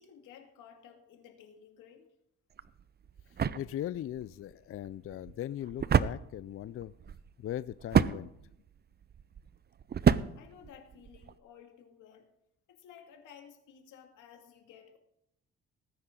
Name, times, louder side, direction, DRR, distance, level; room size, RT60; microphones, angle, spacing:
voice 1, 0.0-2.1 10.4-12.3 12.7-15.0, left 8 dB, 90° left, 3 dB, 2.3 m, -55 dB
sound 1, 2.5-11.4, right 7 dB, 35° right, 0.6 m, -31 dB
voice 2, 3.3-6.9 7.4-8.3, left 12 dB, 45° left, 16 dB, 0.4 m, -39 dB
18.5 x 9.8 x 3.8 m, 0.79 s
cardioid pair, 90°, 30 cm